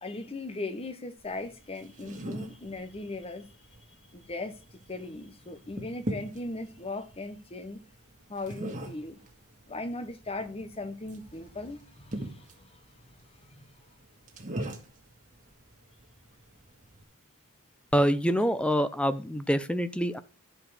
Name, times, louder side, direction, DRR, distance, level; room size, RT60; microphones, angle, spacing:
voice 1, 0.0-3.5 4.1-4.6 4.9-7.8 8.3-9.2 9.7-12.8 13.4-13.6, left 2 dB, 25° left, 0.9 m, -38 dB
sound 1, 1.2-17.0, right 1 dB, 35° right, 1.7 m, -43 dB
voice 2, 17.9-20.2, equal, 5° left, 0.6 m, -26 dB
11.0 x 4.8 x 5.0 m
head